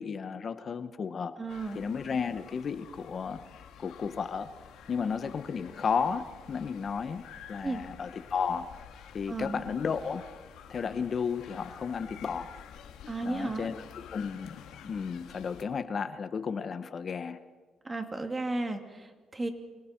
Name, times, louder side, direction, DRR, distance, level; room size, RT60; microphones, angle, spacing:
voice 1, 0.0-1.4 1.7-3.4 3.8-4.5 4.9-8.8 9.1-10.3 10.7-12.5 13.2-13.8 14.1-14.6 14.8-17.4, left 6 dB, 45° left, 11 dB, 1.0 m, -33 dB
voice 2, 1.4-1.8 7.6-7.9 9.3-9.6 13.1-13.7 17.8-19.5, right 2 dB, 20° right, 5 dB, 2.7 m, -34 dB
sound 1, 1.5-15.6, left 8 dB, 85° left, 2.1 m, -50 dB
28.5 x 25.5 x 4.5 m, 1.3 s
cardioid pair, 90°, 0 cm